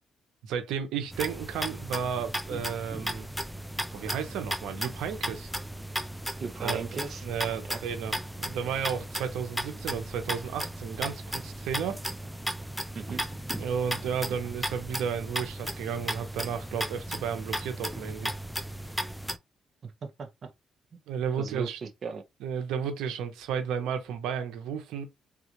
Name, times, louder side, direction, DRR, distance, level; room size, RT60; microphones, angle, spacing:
voice 1, 0.4-3.3 3.9-5.5 6.6-6.9 7.2-12.0 13.6-18.3 21.1-21.8 22.4-25.1, right 7 dB, 90° right, 0.8 m, -33 dB
sound 1, 1.1-19.4, equal, ahead, 0.4 m, -35 dB
voice 2, 6.4-7.2 7.7-7.8 12.9-13.2 19.8-20.5 21.4-22.2, right 5 dB, 50° right, 0.7 m, -37 dB
3.6 x 2.4 x 3.0 m
cardioid pair, 90°, 0 cm